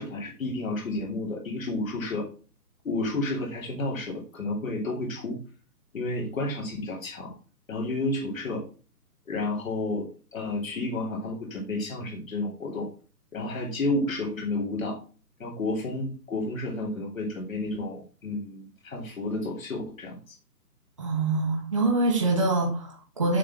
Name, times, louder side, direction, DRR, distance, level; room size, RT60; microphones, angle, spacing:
voice 1, 0.0-2.3 2.8-5.4 5.9-7.4 7.7-8.6 9.3-12.9 13.3-15.0 15.4-20.3, left 2 dB, 55° left, 3.1 m, -31 dB
voice 2, 21.0-23.4, right 2 dB, 20° right, 1.2 m, -25 dB
7.3 x 6.3 x 3.6 m
hypercardioid pair, 175°, 49 cm